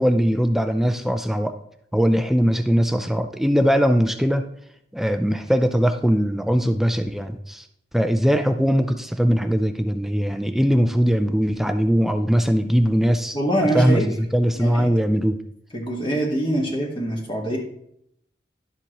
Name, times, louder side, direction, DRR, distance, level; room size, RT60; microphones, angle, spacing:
voice 1, 0.0-1.6 1.9-4.4 4.9-7.7 7.9-13.4 13.7-14.0 14.3-15.4, equal, ahead, 8 dB, 0.4 m, -20 dB
voice 2, 13.3-14.1 14.6-14.9 15.7-17.6, right 1 dB, 30° left, -1 dB, 1.5 m, -24 dB
11.0 x 7.2 x 3.0 m, 0.74 s
head